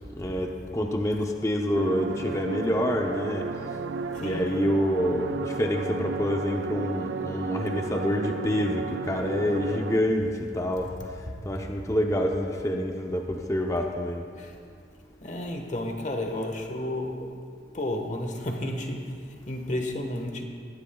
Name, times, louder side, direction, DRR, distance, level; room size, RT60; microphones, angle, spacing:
voice 1, 0.2-3.5 4.1-10.9 11.4-14.2, equal, 15° left, 2 dB, 0.7 m, -27 dB
sound 1, 1.7-10.0, right 4 dB, 90° right, 0.5 m, -34 dB
voice 2, 4.1-4.5 11.3-11.4 14.4-14.5 15.2-17.4 17.7-20.4, left 1 dB, 40° left, 3 dB, 1.3 m, -32 dB
19.5 x 14.0 x 2.3 m, 2.2 s
head